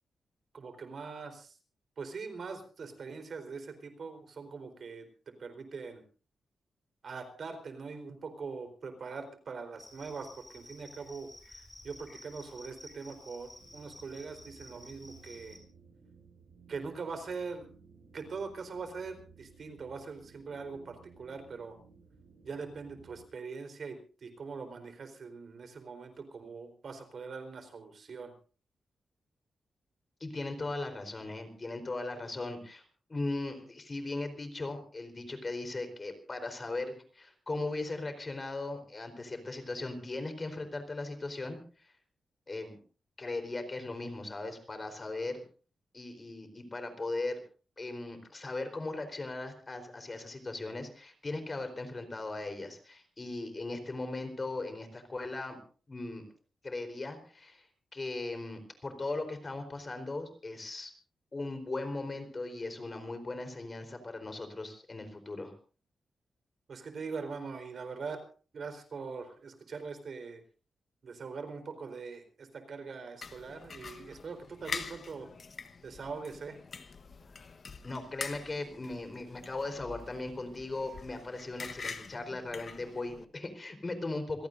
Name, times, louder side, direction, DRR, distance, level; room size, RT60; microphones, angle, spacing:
voice 1, 0.5-1.6 2.0-6.0 7.0-15.6 16.7-17.7 18.1-21.8 22.4-28.3 66.7-68.2 68.5-70.4 71.0-75.3 75.8-76.6, right 4 dB, 60° right, 7 dB, 4.1 m, -42 dB
Cricket, 9.8-15.6, left 1 dB, 15° left, 5.6 m, -53 dB
sound 1, 13.6-23.2, right 5 dB, 85° right, 6.2 m, -58 dB
voice 2, 30.2-32.8 33.1-41.9 42.5-42.8 43.2-45.4 45.9-47.4 47.8-55.6 55.9-56.2 56.6-57.7 57.9-60.9 61.3-65.5 77.8-84.5, left 2 dB, 30° left, 7 dB, 4.1 m, -38 dB
sound 2, 73.2-83.2, left 5 dB, 50° left, 1.3 m, -45 dB
27.5 x 17.0 x 2.7 m, 0.39 s
cardioid pair, 105°, 0 cm